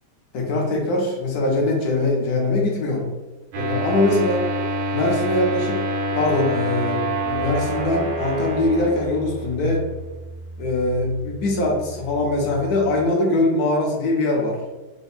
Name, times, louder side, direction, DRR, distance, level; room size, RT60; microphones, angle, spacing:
voice 1, 0.3-3.1 3.5-4.5 4.9-5.8 6.1-9.8 10.6-14.6, left 2 dB, 65° left, 0 dB, 1.0 m, -22 dB
sound 1, 3.5-13.1, right 1 dB, 85° right, 1.6 m, -28 dB
3.6 x 2.1 x 4.0 m, 1.1 s
omnidirectional pair, 2.2 m